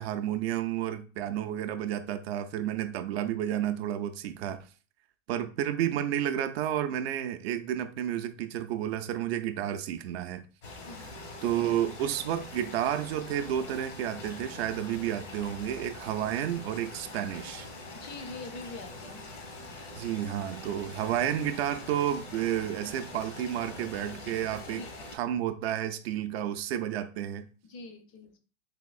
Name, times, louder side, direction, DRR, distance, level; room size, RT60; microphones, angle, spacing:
voice 1, 0.0-4.6 5.3-10.4 11.4-17.7 19.9-24.8 25.1-27.5, right 11 dB, 55° right, 0.4 m, -31 dB
sound 1, 10.6-25.2, left 2 dB, 75° left, 1.3 m, -44 dB
voice 2, 17.9-19.2 24.7-25.0 27.6-28.4, left 3 dB, 35° left, 0.5 m, -44 dB
3.5 x 2.9 x 2.3 m
hypercardioid pair, 115°, 37 cm